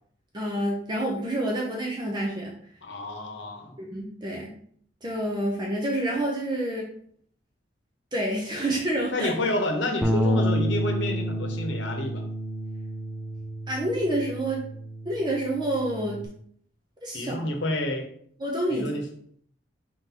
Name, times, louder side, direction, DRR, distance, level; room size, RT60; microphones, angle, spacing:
voice 1, 0.3-2.5 3.8-4.5 5.0-6.9 8.1-9.3 13.7-14.6 15.0-16.2 17.0-17.5 18.4-19.0, right 1 dB, 25° right, -2 dB, 0.7 m, -28 dB
voice 2, 2.8-3.8 9.1-12.2 17.1-18.1 18.7-19.1, left 1 dB, 80° left, 3 dB, 0.9 m, -29 dB
Bass guitar, 10.0-16.3, equal, ahead, 0.3 m, -29 dB
4.7 x 3.8 x 2.8 m, 0.62 s
head